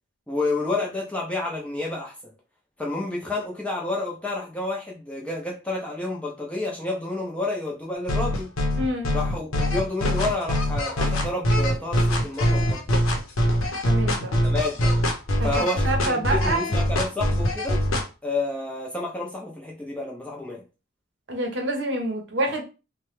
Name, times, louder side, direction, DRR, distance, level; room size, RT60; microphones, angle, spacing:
voice 1, 0.3-2.3 2.8-8.5 9.1-13.0 14.4-14.9 15.4-17.8 18.2-20.6, left 2 dB, 5° left, 0.6 m, -30 dB
sound 1, 8.1-18.0, equal, 90° left, 0.7 m, -23 dB
voice 2, 8.8-9.1 13.8-14.3 15.4-16.6 21.3-22.6, right 1 dB, 60° right, 0.7 m, -27 dB
3.0 x 2.2 x 3.1 m
head